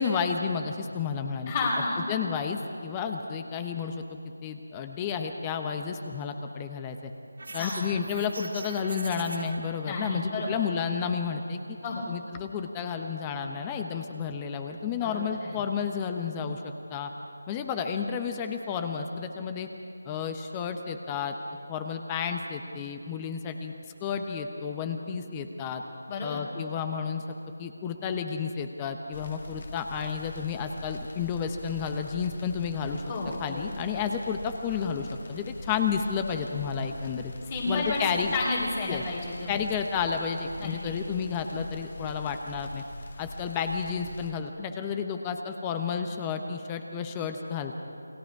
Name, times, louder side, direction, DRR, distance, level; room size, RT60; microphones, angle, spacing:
voice 1, 0.0-1.5 2.1-7.1 7.5-11.6 12.1-17.1 17.5-19.7 20.0-21.3 21.7-23.7 24.0-25.8 26.2-27.2 27.6-33.0 33.4-37.3 37.7-38.3 38.9-39.0 39.5-42.8 43.2-47.8, left 6 dB, 15° left, 6 dB, 1.0 m, -31 dB
voice 2, 1.5-2.2 7.6-8.1 9.8-10.6 11.8-12.0 15.0-15.6 26.1-26.4 33.1-33.7 37.5-38.0 38.3-39.6 40.6-40.9, left 3 dB, 35° left, -4 dB, 3.1 m, -31 dB
sound 1, 7.4-9.6, right 2 dB, 75° right, 3.5 m, -40 dB
sound 2, 29.1-44.3, left 1 dB, 50° left, 2.3 m, -43 dB
29.0 x 20.0 x 4.8 m, 2.6 s
figure-of-eight pair, 165°, 0 cm